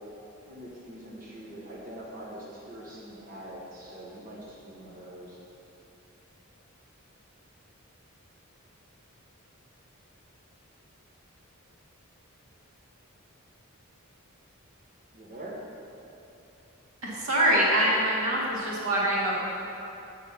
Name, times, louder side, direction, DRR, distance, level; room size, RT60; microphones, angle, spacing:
voice 1, 0.5-5.4 15.1-15.6, right 1 dB, 40° right, -6 dB, 1.3 m, -43 dB
voice 2, 17.0-19.4, right 1 dB, 80° right, -5 dB, 2.0 m, -24 dB
8.5 x 6.0 x 5.7 m, 2.9 s
head